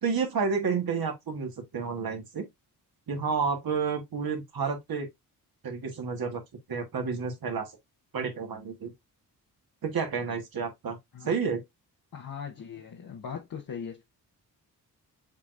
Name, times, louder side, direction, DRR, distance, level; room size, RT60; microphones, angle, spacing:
voice 1, 0.0-2.5 3.1-5.1 5.6-6.4 6.7-7.7 8.1-8.9 9.8-11.0 11.2-11.6, right 5 dB, 60° right, 1.7 m, -30 dB
voice 2, 12.1-14.0, left 7 dB, 55° left, 1.1 m, -39 dB
7.2 x 2.9 x 2.5 m
supercardioid pair, 50°, 41 cm